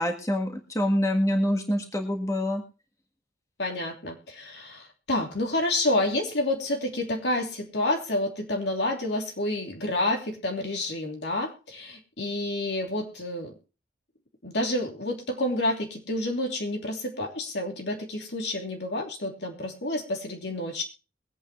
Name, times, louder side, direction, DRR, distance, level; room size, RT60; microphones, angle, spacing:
voice 1, 0.0-2.6, equal, 15° left, 3 dB, 1.6 m, -26 dB
voice 2, 3.6-13.5 14.4-20.8, left 1 dB, 75° left, 2 dB, 2.9 m, -29 dB
22.0 x 8.9 x 3.1 m, 0.33 s
head